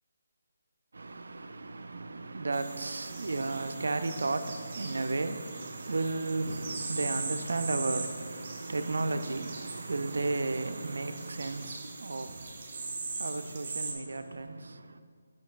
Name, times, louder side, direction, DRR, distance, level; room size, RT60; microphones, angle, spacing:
voice 1, 0.9-15.0, right 3 dB, 70° right, 0.4 m, -34 dB
sound 1, 2.5-13.9, right 3 dB, 40° right, 1.1 m, -41 dB
10.0 x 5.8 x 2.4 m
figure-of-eight pair, 150°, 0 cm